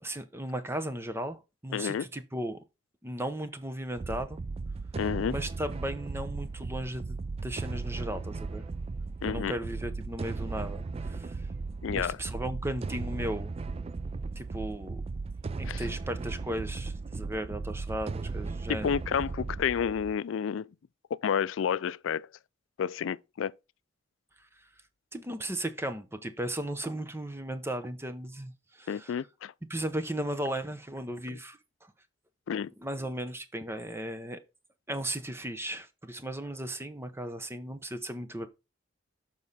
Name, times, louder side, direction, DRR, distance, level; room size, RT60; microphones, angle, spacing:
voice 1, 0.0-2.6 3.0-4.4 5.2-7.2 7.4-8.6 9.2-11.4 11.9-13.5 14.4-15.0 15.6-18.9 24.6-24.7 25.1-29.1 29.7-31.6 32.8-34.4 34.9-38.5, right 1 dB, 15° right, 0.9 m, -36 dB
voice 2, 1.7-2.1 5.0-5.4 9.2-9.6 11.8-12.2 15.7-15.8 18.7-20.7 21.1-22.3 22.8-23.5 28.9-29.5 31.3-31.4 32.5-32.7, left 7 dB, 75° left, 0.4 m, -30 dB
sound 1, 4.0-20.2, right 3 dB, 30° right, 0.3 m, -36 dB
7.1 x 5.5 x 4.1 m
head